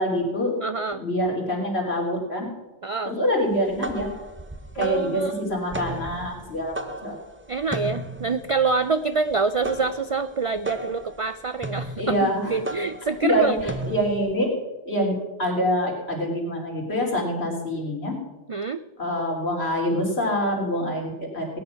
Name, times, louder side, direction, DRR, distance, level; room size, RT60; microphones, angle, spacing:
voice 1, 0.0-0.5 0.9-2.5 3.1-4.1 4.8-7.2 12.0-12.6 13.2-14.5 14.9-15.1 15.4-18.1 19.0-21.5, equal, 70° left, -1 dB, 3.4 m, -25 dB
voice 2, 0.6-1.0 2.8-3.2 4.8-5.5 7.5-13.7 18.5-18.8, right 4 dB, 55° right, 12 dB, 0.3 m, -26 dB
sound 1, 3.5-14.3, right 1 dB, 10° right, 0.7 m, -35 dB
17.0 x 9.5 x 5.8 m, 1.1 s
omnidirectional pair, 1.1 m